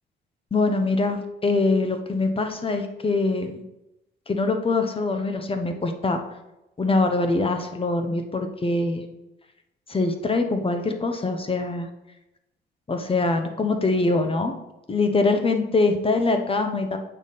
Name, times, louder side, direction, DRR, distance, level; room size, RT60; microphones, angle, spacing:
voice 1, 0.5-3.6 4.3-6.2 6.8-9.0 9.9-11.9 12.9-14.5 14.9-17.0, left 3 dB, 30° left, 6 dB, 1.0 m, -23 dB
8.3 x 5.5 x 4.2 m, 0.93 s
cardioid pair, 90°, 20 cm